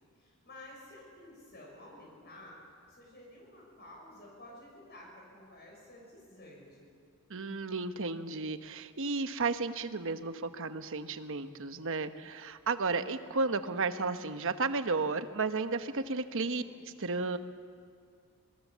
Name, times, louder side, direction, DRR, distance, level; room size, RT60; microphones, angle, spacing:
voice 1, 0.1-2.6 2.9-6.9 16.4-16.8, left 1 dB, 50° left, -2 dB, 6.3 m, -52 dB
voice 2, 7.3-16.6 17.0-17.4, right 3 dB, 65° right, 10 dB, 1.0 m, -33 dB
26.0 x 22.0 x 7.5 m, 2.2 s
head